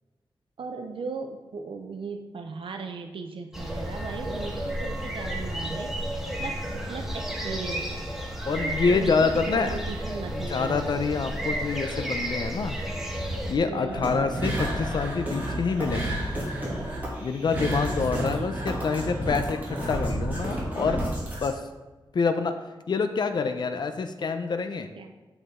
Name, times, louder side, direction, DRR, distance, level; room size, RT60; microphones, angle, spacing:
voice 1, 0.6-5.9 6.4-6.6 6.9-8.0 8.5-10.9 13.6-14.1 18.3-18.5 25.0-25.1, right 4 dB, 75° right, 5 dB, 0.6 m, -37 dB
sound 1, 3.5-13.5, right 1 dB, 5° right, 1.4 m, -32 dB
voice 2, 8.5-9.8 10.3-12.8 13.5-16.2 17.2-21.0 21.4-21.6 22.1-22.6 22.9-24.9, left 4 dB, 55° left, 8 dB, 0.5 m, -26 dB
sound 2, 13.9-21.5, right 1 dB, 20° right, 2.4 m, -30 dB
7.9 x 7.0 x 3.7 m, 1.2 s
wide cardioid pair, 135°, 9 cm